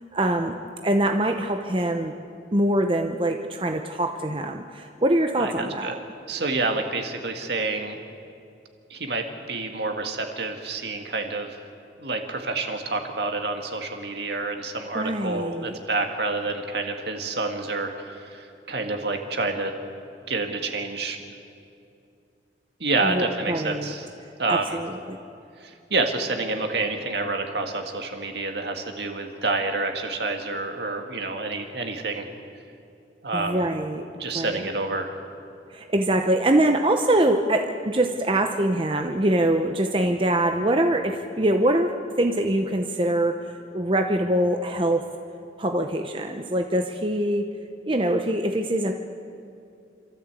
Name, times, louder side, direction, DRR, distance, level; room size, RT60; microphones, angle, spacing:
voice 1, 0.1-0.6 0.8-2.1 2.5-6.0 14.9-15.8 23.0-23.9 24.5-25.2 33.3-34.1 34.3-34.7 35.7-45.0 45.6-47.5 47.9-48.9, right 1 dB, 30° right, 4 dB, 0.8 m, -24 dB
voice 2, 5.4-6.0 6.3-8.0 8.9-11.6 12.0-19.7 20.3-21.2 22.8-24.1 24.4-24.8 25.6-32.3 33.2-33.7 34.1-35.2, right 3 dB, 65° right, 4 dB, 2.0 m, -28 dB
27.5 x 13.5 x 8.2 m, 2.5 s
head